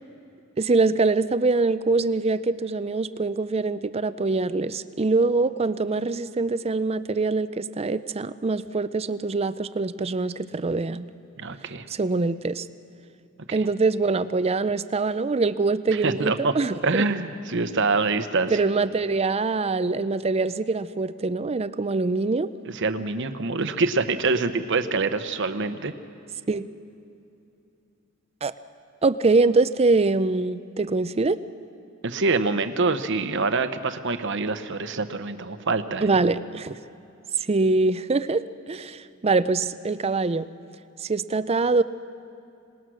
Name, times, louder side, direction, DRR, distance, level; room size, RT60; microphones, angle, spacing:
voice 1, 0.6-11.1 11.9-12.6 13.5-17.0 18.5-22.5 26.5-26.7 28.4-28.5 29.0-31.4 36.0-36.7 37.4-40.5 41.0-41.8, right 3 dB, 30° right, 14 dB, 0.5 m, -24 dB
voice 2, 11.4-11.9 13.5-13.7 15.9-16.6 16.8-18.6 22.7-25.9 32.0-36.2, right 3 dB, 60° right, 9 dB, 1.0 m, -25 dB
26.5 x 19.0 x 6.3 m, 2.7 s
head